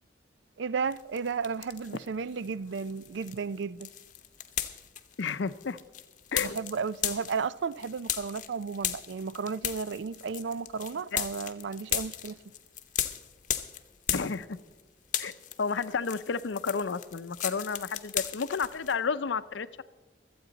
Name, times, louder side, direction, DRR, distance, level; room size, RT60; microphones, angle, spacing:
voice 1, 0.6-3.9 6.4-12.4, right 5 dB, 75° right, 0.4 m, -33 dB
sound 1, 0.9-2.1 2.4-14.8 15.0-18.9, left 11 dB, 45° left, 0.8 m, -36 dB
voice 2, 5.2-5.8 6.3-6.6 11.1-11.2 14.1-14.6 15.2-15.3 15.6-19.8, left 5 dB, 90° left, 0.6 m, -31 dB
24.5 x 8.6 x 4.0 m
head